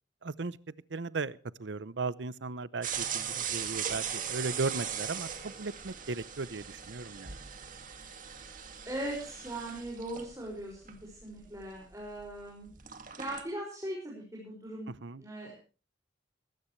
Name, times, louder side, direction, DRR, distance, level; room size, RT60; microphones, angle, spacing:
voice 1, 0.2-0.6 0.9-7.4 14.9-15.2, right 3 dB, 70° right, 18 dB, 0.7 m, -37 dB
sound 1, 2.8-12.4 12.7-13.4, right 8 dB, 45° right, 2.1 m, -39 dB
voice 2, 8.9-12.7 13.1-14.9 15.2-15.5, right 1 dB, 15° right, -3 dB, 5.8 m, -39 dB
20.0 x 17.5 x 3.2 m, 0.36 s
head